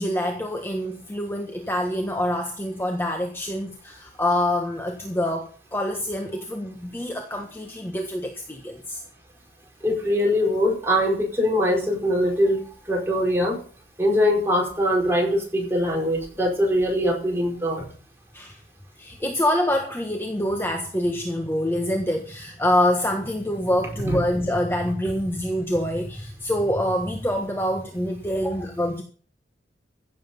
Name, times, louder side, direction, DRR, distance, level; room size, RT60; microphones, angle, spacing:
voice 1, 0.0-9.0 18.3-18.6 19.0-29.0, left 1 dB, 10° left, 3 dB, 1.3 m, -26 dB
voice 2, 9.8-13.6 14.0-17.8 24.0-24.2, equal, 15° right, 0 dB, 5.0 m, -22 dB
15.5 x 7.8 x 5.4 m, 0.43 s
head